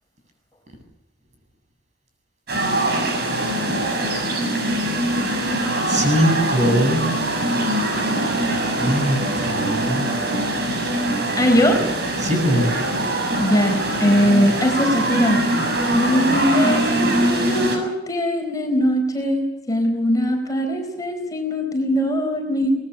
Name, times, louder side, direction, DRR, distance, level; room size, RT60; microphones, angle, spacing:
sound 1, 2.5-17.8, right 1 dB, 60° right, 6.9 m, -22 dB
voice 1, 5.9-7.0 8.8-10.1 12.2-12.7, equal, 40° right, 4 dB, 8.0 m, -21 dB
voice 2, 11.4-11.8 13.4-15.4 15.9-22.7, equal, 20° left, 3 dB, 4.2 m, -21 dB
24.5 x 20.0 x 7.0 m, 0.82 s
head